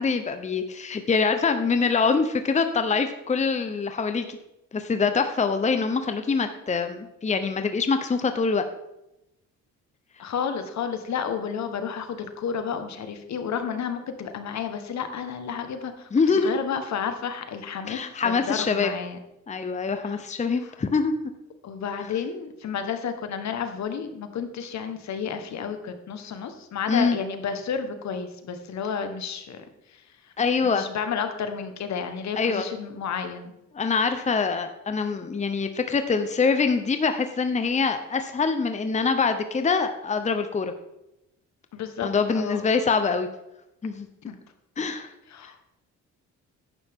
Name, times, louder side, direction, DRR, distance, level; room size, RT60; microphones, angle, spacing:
voice 1, 0.0-4.4 4.7-8.6 16.1-16.5 17.9-18.9 19.5-21.1 26.9-27.2 30.4-30.8 32.4-32.7 33.7-40.7 42.0-43.3 43.8-44.1 44.8-45.1, left 5 dB, 25° left, 8 dB, 0.8 m, -24 dB
voice 2, 10.2-19.2 20.1-20.2 21.6-29.6 30.6-33.5 41.7-42.1 42.3-42.7 44.3-44.4 45.3-45.6, left 7 dB, 65° left, 8 dB, 1.4 m, -31 dB
11.0 x 8.8 x 3.7 m, 0.89 s
cardioid pair, 90°, 30 cm